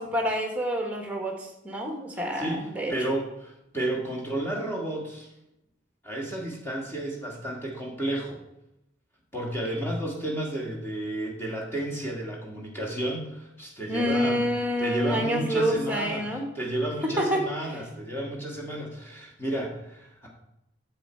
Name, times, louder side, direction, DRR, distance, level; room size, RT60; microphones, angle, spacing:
voice 1, 0.0-1.3 1.6-2.9 13.9-16.5 17.2-17.4, equal, 5° right, 2 dB, 1.2 m, -27 dB
voice 2, 2.3-5.3 6.0-8.4 9.3-14.4 14.8-20.3, right 1 dB, 10° left, -2 dB, 1.6 m, -32 dB
7.3 x 6.9 x 4.4 m, 0.85 s
head